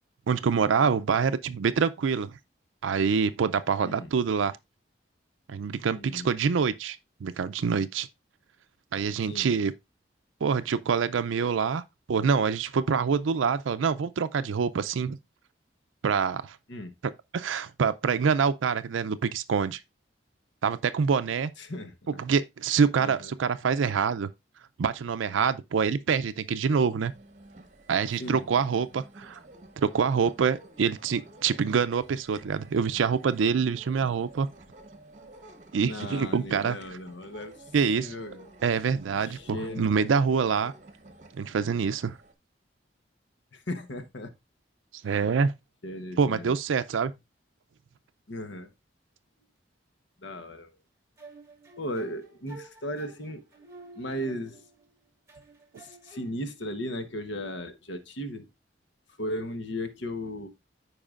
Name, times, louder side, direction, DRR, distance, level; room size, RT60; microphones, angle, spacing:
voice 1, 0.3-2.4 2.8-4.5 5.5-8.1 8.9-9.7 10.4-11.8 12.1-15.2 16.0-16.6 17.3-19.8 20.6-21.5 22.2-24.3 24.8-27.1 27.9-29.4 29.8-34.5 35.7-36.8 37.7-38.1 38.6-40.7 41.4-42.2 45.0-45.5 46.2-47.1, right 6 dB, 85° right, 0.4 m, -26 dB
voice 2, 5.9-6.3 9.3-9.5 16.7-16.9 21.6-22.2 23.0-23.3 28.2-28.4 35.8-37.7 38.0-38.5 39.1-39.9 43.5-44.3 45.8-46.5 48.3-48.7 50.2-50.8 51.8-53.4 53.9-54.6 55.8-58.5 59.2-60.5, left 1 dB, 70° left, 1.0 m, -36 dB
sound 1, 27.0-42.3, right 2 dB, 40° right, 1.0 m, -52 dB
sound 2, 51.2-54.9 55.3-56.3, right 2 dB, 15° right, 1.6 m, -50 dB
14.0 x 4.7 x 2.4 m
head